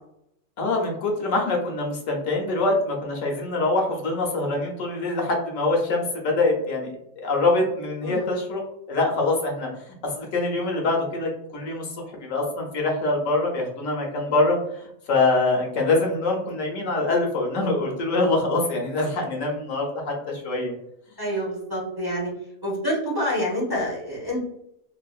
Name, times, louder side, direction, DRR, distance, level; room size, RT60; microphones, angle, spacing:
voice 1, 0.6-6.9 7.2-8.6 8.9-20.7, left 2 dB, 80° left, 0 dB, 1.2 m, -24 dB
voice 2, 21.2-22.3 22.6-24.4, equal, 20° right, -5 dB, 0.8 m, -27 dB
3.3 x 2.2 x 2.3 m, 0.77 s
omnidirectional pair, 1.4 m